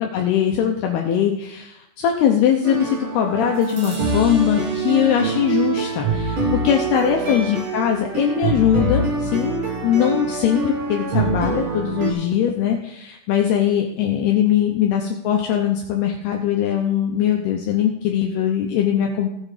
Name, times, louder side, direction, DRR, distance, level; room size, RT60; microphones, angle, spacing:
voice 1, 0.0-19.3, left 9 dB, 75° left, 2 dB, 2.6 m, -21 dB
sound 1, 2.6-12.1, right 3 dB, 50° right, 1.7 m, -24 dB
15.5 x 7.4 x 5.0 m, 0.83 s
omnidirectional pair, 5.1 m